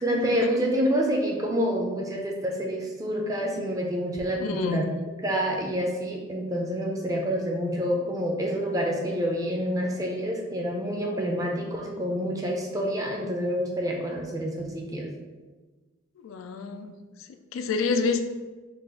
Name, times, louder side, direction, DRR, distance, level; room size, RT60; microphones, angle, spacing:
voice 1, 0.0-4.9 5.2-15.1, equal, 15° right, 0 dB, 0.4 m, -28 dB
voice 2, 4.5-4.9 16.2-16.9 17.5-18.3, left 4 dB, 90° left, 8 dB, 0.3 m, -27 dB
3.8 x 2.4 x 3.6 m, 1.3 s
head